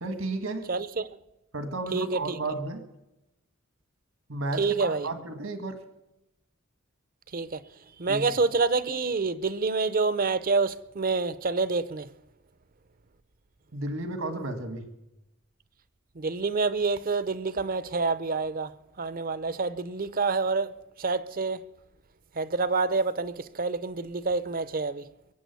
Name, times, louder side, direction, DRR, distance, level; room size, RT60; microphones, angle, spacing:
voice 1, 0.0-0.7 1.5-2.8 4.3-5.8 8.1-8.3 13.7-14.9, right 2 dB, 75° right, 1.7 m, -33 dB
voice 2, 0.7-1.2 1.9-2.4 4.6-5.1 7.3-7.6 8.0-12.1 16.2-18.7 19.0-20.7 21.0-21.6 22.4-25.1, right 4 dB, 45° right, 0.7 m, -27 dB
22.5 x 8.8 x 6.9 m
head